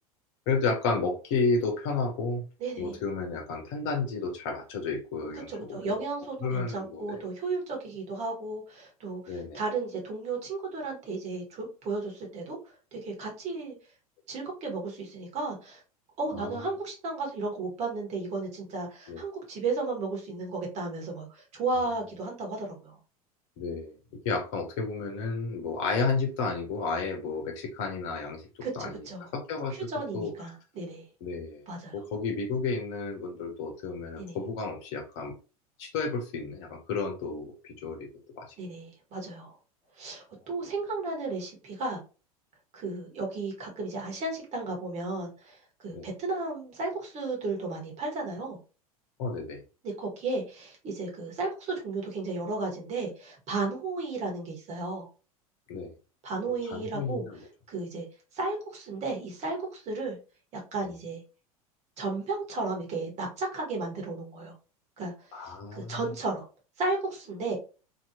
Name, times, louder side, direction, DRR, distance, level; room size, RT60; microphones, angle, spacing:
voice 1, 0.5-2.4 2.8-5.9 6.4-7.2 9.3-9.6 16.3-16.7 19.1-19.2 23.6-24.0 24.2-28.5 28.7-29.9 30.1-30.3 31.2-31.6 31.9-35.3 35.8-38.1 38.3-38.5 45.9-46.1 49.2-49.6 55.7-55.9 56.5-57.4 65.3-66.0, left 4 dB, 50° left, 5 dB, 1.0 m, -32 dB
voice 2, 2.6-3.0 5.5-12.6 12.9-13.7 14.3-15.8 16.2-23.0 28.6-29.3 29.9-31.0 31.7-31.9 34.2-34.4 38.6-39.5 40.0-42.0 42.7-45.6 45.8-48.6 49.8-55.1 56.2-57.2 57.7-58.1 58.3-60.2 60.7-61.2 62.0-64.5 65.0-65.1 65.4-66.5 66.8-67.6, right 3 dB, 35° right, 0 dB, 1.5 m, -34 dB
2.9 x 2.9 x 2.7 m, 0.34 s
figure-of-eight pair, 80°, 19 cm